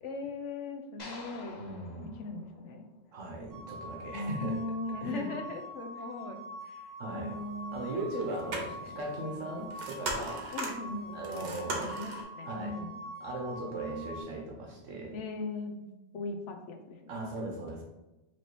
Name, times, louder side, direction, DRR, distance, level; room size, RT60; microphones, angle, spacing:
voice 1, 0.0-1.6 2.0-2.9 4.1-7.9 8.4-9.0 9.2-9.7 10.5-13.0 15.1-15.8 16.1-17.2, left 2 dB, 75° left, 6 dB, 0.9 m, -40 dB
sound 1, 1.0-3.3, left 3 dB, 45° left, 0.7 m, -49 dB
voice 2, 1.6-2.1 3.1-4.6 5.0-5.3 7.0-7.4 7.7-10.5 11.1-11.9 12.4-12.8 13.2-15.2 17.1-17.8, right 2 dB, 85° right, 0 dB, 1.3 m, -38 dB
sound 2, 3.5-14.2, equal, 10° left, 1.2 m, -45 dB
sound 3, 8.1-12.2, right 2 dB, 45° right, 0.7 m, -38 dB
4.6 x 2.8 x 3.0 m, 1.0 s
omnidirectional pair, 1.3 m